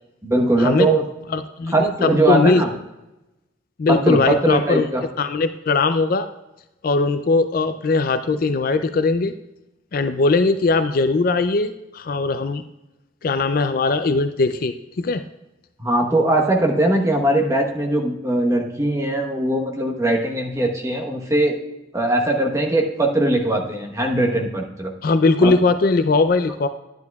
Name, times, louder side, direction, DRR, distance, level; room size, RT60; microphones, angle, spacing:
voice 1, 0.2-1.0 1.7-2.7 3.9-5.0 15.8-21.6 21.9-24.9 25.4-25.5, right 1 dB, 15° right, 1 dB, 1.0 m, -20 dB
voice 2, 1.3-2.6 3.8-4.8 5.2-6.3 6.8-9.3 9.9-12.6 13.2-15.2 25.0-26.7, left 3 dB, 50° left, 10 dB, 0.4 m, -19 dB
10.5 x 10.5 x 2.3 m, 0.97 s
head